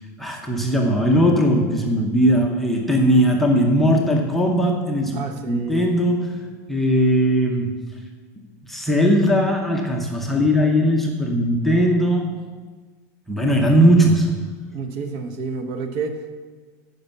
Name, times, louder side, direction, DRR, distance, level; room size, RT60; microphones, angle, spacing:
voice 1, 0.2-7.9 8.7-12.4 13.3-14.4, equal, ahead, -1 dB, 0.7 m, -19 dB
voice 2, 5.1-5.9 14.7-16.4, right 4 dB, 40° right, 7 dB, 0.9 m, -30 dB
10.5 x 5.3 x 7.0 m, 1.4 s
supercardioid pair, 180°, 9 cm